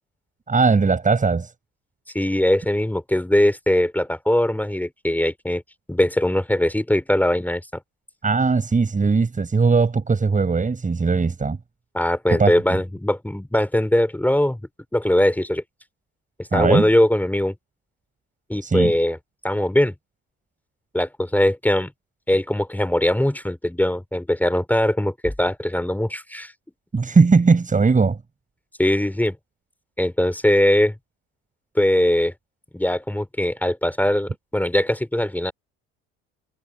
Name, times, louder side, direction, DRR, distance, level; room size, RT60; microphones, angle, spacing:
voice 1, 0.5-1.5 8.2-11.6 12.3-12.5 16.5-16.9 18.6-18.9 26.9-28.2, right 4 dB, 25° right, 7.5 m, -19 dB
voice 2, 2.1-5.6 5.9-7.6 11.9-14.6 14.9-15.6 16.5-17.5 18.5-19.2 19.4-19.9 20.9-21.9 22.3-26.5 28.8-29.4 30.0-30.9 31.8-32.3 32.7-35.5, left 1 dB, 5° left, 3.5 m, -21 dB
supercardioid pair, 80°, 30 cm